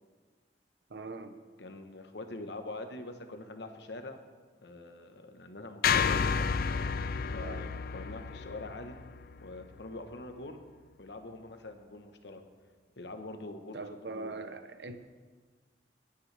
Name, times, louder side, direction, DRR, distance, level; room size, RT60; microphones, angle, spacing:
voice 1, 0.9-1.4 7.4-7.7 13.7-15.0, right 3 dB, 75° right, 9 dB, 0.9 m, -41 dB
voice 2, 1.6-4.2 4.6-6.5 7.3-9.0 9.4-10.6 11.0-12.4 13.0-13.8 14.1-14.4, left 2 dB, 75° left, 6 dB, 1.1 m, -44 dB
sound 1, 5.8-10.1, left 6 dB, 55° left, 0.4 m, -31 dB
18.5 x 9.4 x 3.4 m, 1.5 s
head